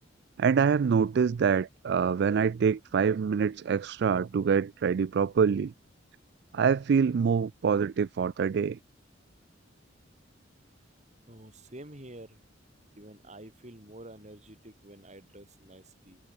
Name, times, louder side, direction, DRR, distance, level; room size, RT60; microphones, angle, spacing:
voice 1, 0.4-5.7 6.5-8.8, right 6 dB, 60° right, 0.3 m, -25 dB
voice 2, 11.3-12.4 13.0-16.2, right 1 dB, 35° right, 6.2 m, -48 dB
head